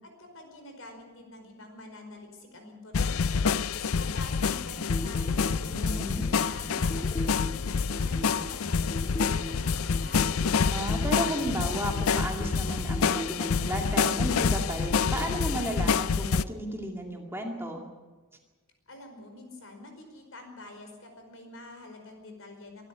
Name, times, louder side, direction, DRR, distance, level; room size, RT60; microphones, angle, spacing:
voice 1, 0.0-3.4 3.7-6.0 6.4-10.4 18.9-22.9, left 2 dB, 70° left, 4 dB, 5.0 m, -46 dB
sound 1, 2.9-16.4, left 5 dB, 85° left, 0.5 m, -27 dB
sound 2, 3.8-15.8, equal, 15° left, 1.3 m, -40 dB
voice 2, 5.7-6.2 10.7-17.8, right 1 dB, 10° right, 2 dB, 2.3 m, -33 dB
23.5 x 12.5 x 9.5 m, 1.3 s
head